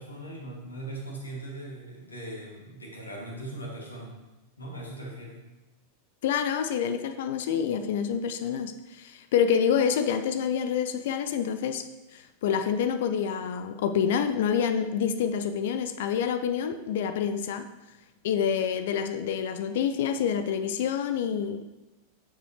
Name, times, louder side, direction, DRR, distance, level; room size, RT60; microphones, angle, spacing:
voice 1, 0.0-4.2 4.6-5.4, right 1 dB, 80° left, -2 dB, 2.4 m, -39 dB
voice 2, 6.2-11.8 12.1-17.7 18.2-21.7, left 7 dB, 55° left, 9 dB, 0.5 m, -27 dB
11.5 x 6.9 x 3.2 m, 1.1 s
figure-of-eight pair, 90°, 0 cm